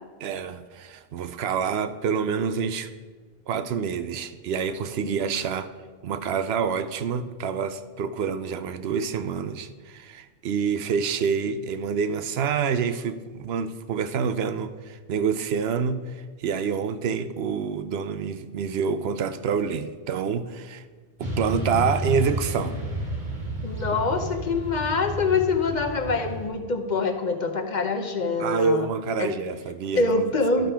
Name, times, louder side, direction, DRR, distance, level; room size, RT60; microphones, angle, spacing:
voice 1, 0.2-2.9 3.5-5.7 6.0-20.8 21.2-22.8 28.4-30.2 30.6-30.7, right 6 dB, 75° right, 11 dB, 0.8 m, -27 dB
Motorcycle / Traffic noise roadway noise, 21.2-26.5, right 1 dB, 45° right, 1.6 m, -31 dB
voice 2, 23.6-28.9 29.2-29.3 30.0-30.7, left 3 dB, 50° left, 5 dB, 0.9 m, -25 dB
11.5 x 5.4 x 5.7 m, 1.4 s
omnidirectional pair, 1.1 m